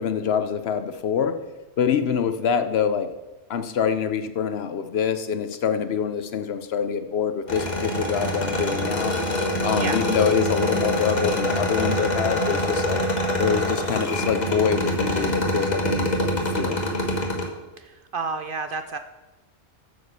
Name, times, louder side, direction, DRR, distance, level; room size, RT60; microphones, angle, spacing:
voice 1, 0.0-1.4 1.8-3.1 3.5-9.1 9.6-13.0 13.4-17.1, left 7 dB, 60° left, 9 dB, 0.9 m, -25 dB
sound 1, 7.5-17.4, left 1 dB, 35° left, 1.4 m, -25 dB
voice 2, 17.8-19.0, right 4 dB, 60° right, 9 dB, 0.6 m, -30 dB
9.0 x 6.6 x 6.7 m, 1.1 s
omnidirectional pair, 1.2 m